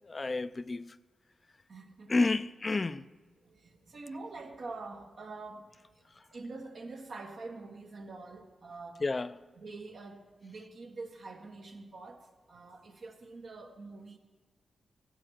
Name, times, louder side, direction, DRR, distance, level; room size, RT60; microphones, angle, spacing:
voice 1, 0.1-0.9 2.1-3.0 9.0-9.3, left 3 dB, 40° left, 0.4 m, -30 dB
voice 2, 1.7-2.4 2.9-3.0 3.4-9.0 9.6-14.2, right 3 dB, 70° right, 1.4 m, -46 dB
15.5 x 6.3 x 6.1 m
cardioid pair, 55°, 0 cm